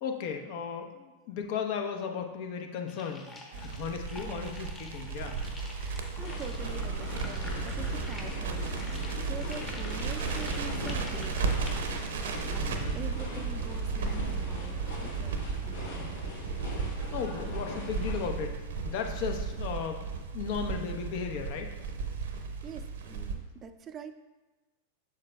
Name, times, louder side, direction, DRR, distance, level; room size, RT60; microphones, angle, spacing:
voice 1, 0.0-3.3 3.5-5.4 12.6-13.0 17.1-20.1 20.3-21.7, left 6 dB, 55° left, 4 dB, 0.7 m, -35 dB
sound 1, 2.9-12.0, left 2 dB, 20° left, 1.1 m, -47 dB
Crackle, 3.5-23.3, right 5 dB, 70° right, 0.7 m, -34 dB
voice 2, 4.2-4.8 5.8-11.7 12.2-16.1 22.4-24.2, right 6 dB, 30° right, 9 dB, 0.4 m, -45 dB
sound 2, 6.2-18.3, left 2 dB, 70° left, 1.5 m, -41 dB
7.2 x 6.5 x 2.2 m, 1.2 s
figure-of-eight pair, 90°, 0 cm